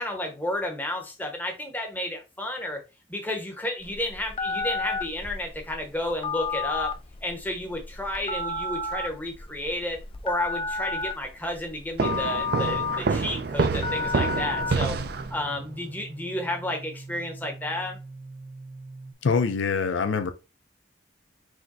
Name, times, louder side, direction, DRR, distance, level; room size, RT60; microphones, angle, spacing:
voice 1, 0.0-2.8 3.1-6.9 7.2-10.0 10.2-15.0 15.3-18.0, left 1 dB, 10° left, 0.9 m, -32 dB
Telephone, 3.8-15.3, left 4 dB, 30° left, 0.4 m, -32 dB
sound 1, 12.0-15.7, right 4 dB, 55° right, 0.4 m, -27 dB
sound 2, 12.4-19.1, right 2 dB, 30° right, 0.8 m, -43 dB
voice 2, 19.2-20.3, left 5 dB, 85° left, 0.5 m, -24 dB
4.9 x 2.2 x 4.0 m
head